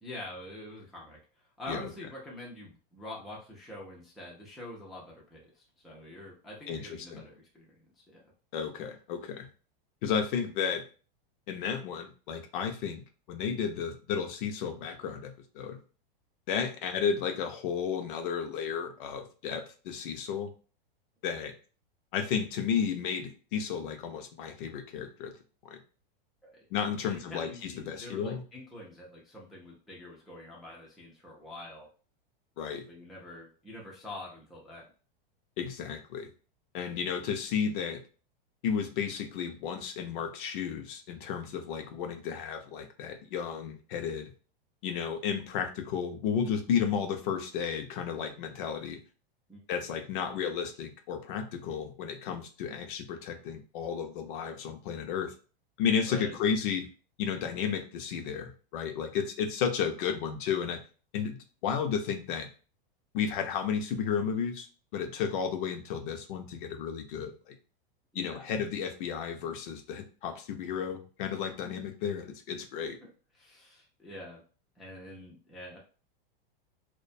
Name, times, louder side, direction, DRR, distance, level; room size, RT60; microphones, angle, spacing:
voice 1, 0.0-1.2 1.6-8.2 26.4-26.5 27.0-31.9 32.9-34.9 49.5-49.6 56.0-56.4 68.1-68.5 72.8-73.1 73.3-74.4 74.8-75.8, left 1 dB, ahead, -4 dB, 0.3 m, -45 dB
voice 2, 6.7-7.2 8.5-9.5 10.0-10.8 11.5-13.0 13.3-15.8 16.5-20.5 21.2-21.5 22.1-25.3 25.6-25.8 26.7-28.4 32.6-32.9 35.6-36.3 36.7-38.0 38.6-44.3 44.8-49.0 49.7-55.3 55.8-56.9 57.2-60.8 61.1-61.4 61.6-62.5 63.1-64.7 64.9-67.6 68.1-73.0, left 7 dB, 60° left, 6 dB, 0.5 m, -33 dB
2.4 x 2.2 x 2.5 m, 0.37 s
supercardioid pair, 135°, 29 cm